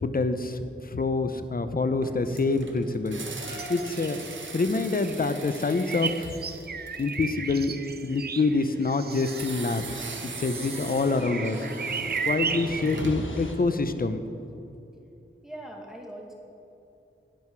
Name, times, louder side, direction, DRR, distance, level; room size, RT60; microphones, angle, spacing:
voice 1, 0.0-3.2 3.7-4.2 4.5-6.3 7.0-7.7 8.0-11.7 12.3-14.2, left 3 dB, 45° left, 10 dB, 0.7 m, -26 dB
sound 1, 2.0-7.4 9.1-13.5, right 3 dB, 65° right, 1.0 m, -39 dB
sound 2, 2.8-2.9 3.4-5.9 6.2-13.5, left 2 dB, 70° left, 1.3 m, -43 dB
sound 3, 3.5-4.6 4.9-13.0, right 6 dB, 50° right, 0.5 m, -35 dB
voice 2, 15.4-16.3, right 1 dB, ahead, -1 dB, 2.0 m, -41 dB
11.5 x 9.5 x 4.7 m, 2.8 s
wide cardioid pair, 55°, 21 cm